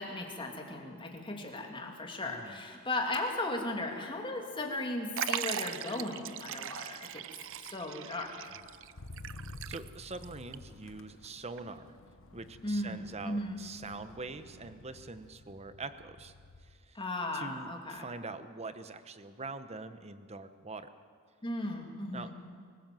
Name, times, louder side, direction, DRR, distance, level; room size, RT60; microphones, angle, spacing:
voice 1, 0.0-7.2 7.7-8.3 12.6-13.6 16.9-18.1 21.4-22.3, left 2 dB, 25° left, 2 dB, 2.5 m, -36 dB
Motor vehicle (road), 1.7-2.1 2.4-16.8 17.2-17.7, left 2 dB, 60° left, 1.2 m, -53 dB
voice 2, 2.2-2.6 9.7-11.9 12.3-16.3 16.6-17.0 17.3-20.9 22.1-22.3, right 3 dB, 30° right, 11 dB, 0.9 m, -44 dB
Liquid, 5.2-10.2 10.5-10.6 11.6-11.7, right 10 dB, 60° right, 0.6 m, -39 dB
24.0 x 16.0 x 7.7 m, 2.1 s
head